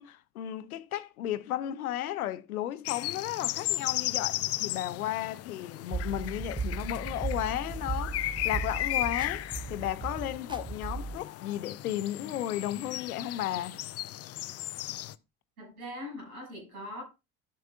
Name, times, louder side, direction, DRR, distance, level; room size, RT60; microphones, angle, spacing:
voice 1, 0.0-13.8, left 12 dB, 80° left, 0.7 m, -34 dB
sound 1, 2.8-15.1, left 15 dB, 35° left, 0.5 m, -35 dB
sound 2, 5.9-11.2, right 4 dB, 10° right, 1.0 m, -36 dB
voice 2, 15.6-17.0, left 1 dB, 80° right, 6.7 m, -41 dB
13.0 x 7.5 x 2.4 m
figure-of-eight pair, 55°, 43 cm